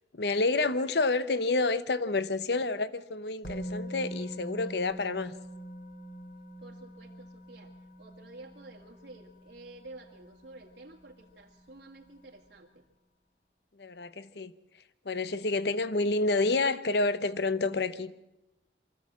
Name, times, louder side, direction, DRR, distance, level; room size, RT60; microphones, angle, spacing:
voice 1, 0.1-5.3 13.8-14.5 15.0-18.1, left 3 dB, 65° left, 0.8 m, -29 dB
Musical instrument, 3.4-11.3 11.6-11.8, right 1 dB, 50° left, 1.9 m, -44 dB
voice 2, 6.6-7.7 8.0-12.9, right 2 dB, 70° right, 2.1 m, -50 dB
23.5 x 15.0 x 7.5 m
head